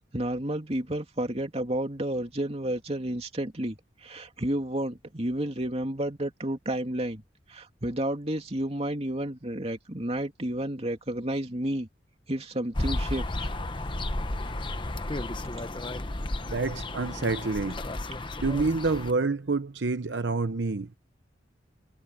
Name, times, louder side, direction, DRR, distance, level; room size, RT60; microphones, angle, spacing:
voice 1, 0.0-7.2 7.5-11.9 12.3-13.5, right 1 dB, 35° right, 2.9 m, -31 dB
sound 1, 12.7-19.1, left 1 dB, 25° left, 1.0 m, -33 dB
voice 2, 16.5-17.8 18.4-21.0, right 3 dB, 75° right, 0.8 m, -28 dB
head